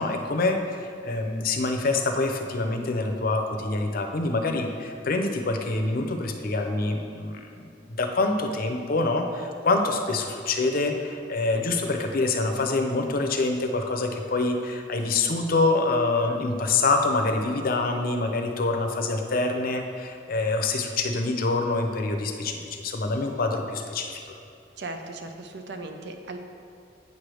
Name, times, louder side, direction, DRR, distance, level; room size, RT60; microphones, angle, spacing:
voice 1, 0.0-24.3, left 3 dB, 55° left, 4 dB, 0.6 m, -26 dB
voice 2, 24.8-26.4, right 2 dB, 65° right, 5 dB, 0.6 m, -37 dB
8.2 x 3.4 x 6.2 m, 2.4 s
head